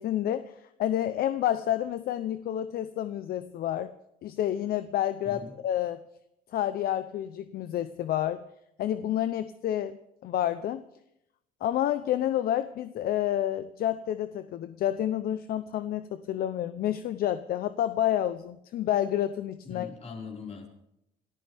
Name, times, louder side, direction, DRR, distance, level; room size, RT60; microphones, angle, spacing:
voice 1, 0.0-3.9 4.2-6.0 6.5-8.4 8.8-10.0 10.2-10.8 11.6-19.9, left 11 dB, 65° left, 12 dB, 0.7 m, -29 dB
voice 2, 19.6-20.7, left 4 dB, 40° left, 0 dB, 5.1 m, -41 dB
28.5 x 13.5 x 3.5 m, 0.81 s
cardioid pair, 110°, 17 cm